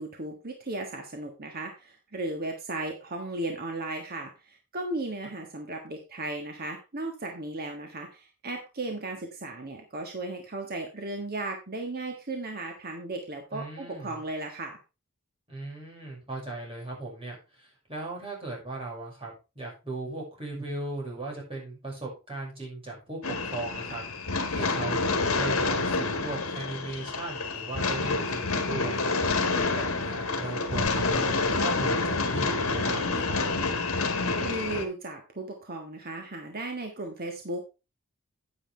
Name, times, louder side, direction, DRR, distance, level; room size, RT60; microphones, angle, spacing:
voice 1, 0.0-14.8 34.4-37.6, right 2 dB, 45° right, 3 dB, 1.5 m, -36 dB
voice 2, 13.5-14.2 15.5-29.1 29.7-33.4, right 2 dB, 25° right, -2 dB, 5.9 m, -38 dB
sound 1, 23.2-34.8, left 3 dB, 70° left, 1.9 m, -28 dB
9.7 x 9.5 x 3.4 m, 0.28 s
head